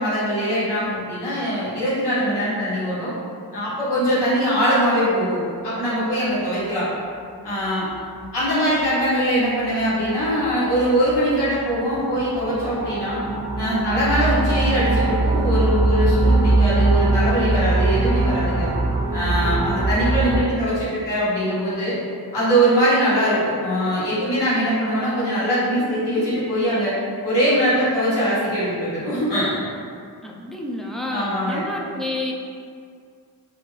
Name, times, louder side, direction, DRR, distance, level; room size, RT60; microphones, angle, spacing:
voice 1, 0.0-3.1 3.5-6.9 7.4-7.9 8.3-13.2 13.6-18.7 19.1-22.0 22.3-26.9 27.2-29.6 31.1-31.6, equal, 85° left, -11 dB, 1.3 m, -22 dB
sound 1, 7.4-7.5 8.2-8.5 8.8-8.9 9.5-20.4, right 2 dB, 45° right, 0.7 m, -22 dB
voice 2, 30.2-32.3, left 1 dB, ahead, -2 dB, 0.4 m, -29 dB
2.7 x 2.5 x 3.1 m, 2.2 s
cardioid pair, 45°, 40 cm